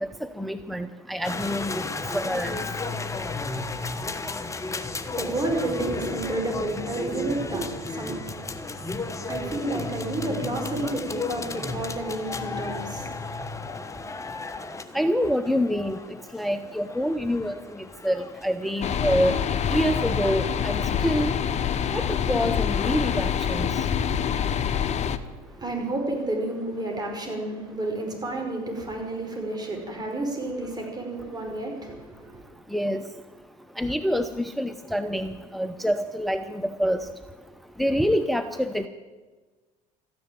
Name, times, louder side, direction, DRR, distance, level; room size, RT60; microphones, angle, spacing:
voice 1, 0.0-1.8 2.1-2.6 14.9-16.0 16.3-17.6 18.0-19.3 19.7-21.3 21.9-23.7 32.7-33.0 33.8-37.1 37.8-38.9, equal, ahead, 10 dB, 0.7 m, -26 dB
sound 1, 1.2-20.9, left 3 dB, 15° left, 1.3 m, -34 dB
voice 2, 4.7-8.2 9.3-13.6 25.5-32.4, right 2 dB, 20° right, 1 dB, 5.2 m, -31 dB
sound 2, 18.8-25.2, left 8 dB, 40° left, 1.1 m, -26 dB
14.0 x 10.5 x 9.5 m, 1.3 s
supercardioid pair, 90°, 18 cm